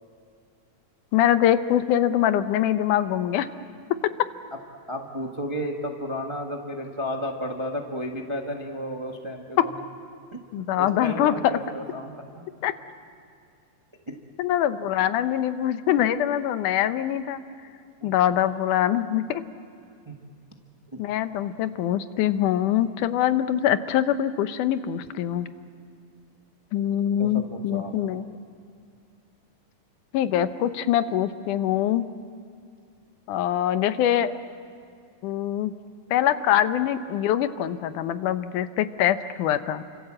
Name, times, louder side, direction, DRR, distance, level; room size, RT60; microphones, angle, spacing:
voice 1, 1.1-3.5 9.6-9.7 10.5-11.4 12.6-12.7 14.4-17.4 18.0-19.4 21.0-25.5 26.7-28.2 30.1-32.1 33.3-34.3 35.2-35.7 36.1-39.8, left 11 dB, 80° left, 11 dB, 2.3 m, -23 dB
voice 2, 4.9-9.7 10.3-12.5 14.1-14.2 18.0-18.1 20.0-20.2 20.9-21.0 27.2-28.2, equal, 25° right, 2 dB, 0.6 m, -33 dB
29.5 x 26.0 x 7.6 m, 2.3 s
omnidirectional pair, 3.6 m